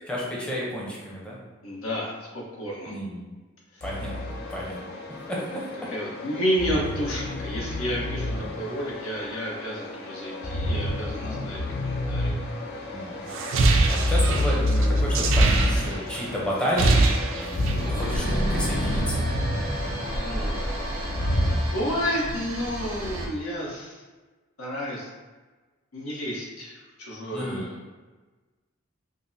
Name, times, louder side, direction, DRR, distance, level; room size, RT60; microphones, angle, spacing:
voice 1, 0.1-1.4 2.9-3.2 3.8-4.2 4.5-4.8 5.3-5.9 8.3-8.6 11.2-11.4 12.9-13.2 13.9-17.0 17.3-19.2 27.3-27.6, equal, 5° left, -5 dB, 0.6 m, -31 dB
voice 2, 1.6-3.0 5.9-12.4 20.1-20.7 21.5-24.0 24.6-25.1 25.9-27.8, equal, 90° left, -4 dB, 1.0 m, -31 dB
sound 1, 3.8-21.6, left 1 dB, 50° left, 0.5 m, -29 dB
sound 2, 13.3-16.2 16.5-17.9, right 2 dB, 65° right, 0.4 m, -22 dB
sound 3, 17.8-23.3, right 1 dB, 85° right, 0.8 m, -31 dB
5.1 x 2.0 x 2.7 m, 1.3 s
head